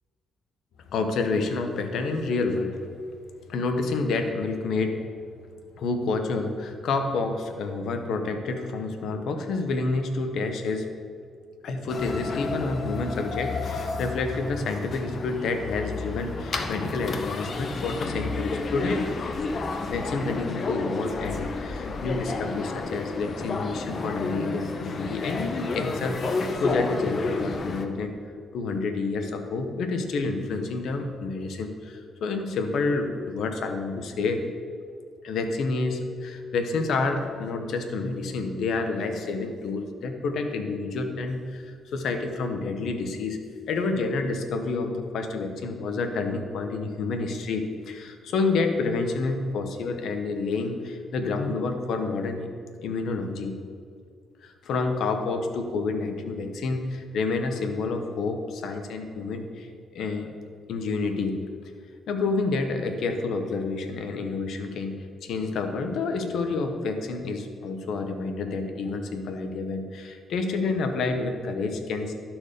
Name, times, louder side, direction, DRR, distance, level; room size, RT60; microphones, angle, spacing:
voice 1, 0.9-2.8 3.5-5.0 5.8-10.9 11.6-19.1 19.9-28.1 28.5-34.4 35.2-43.4 43.7-52.5 52.8-53.6 54.4-60.3 60.7-61.4 62.1-64.9 65.2-72.1, left 3 dB, 70° left, 6 dB, 0.9 m, -29 dB
sound 1, 11.9-27.8, left 3 dB, 50° left, 0.7 m, -31 dB
11.5 x 4.4 x 5.1 m, 2.2 s
cardioid pair, 90°, 0 cm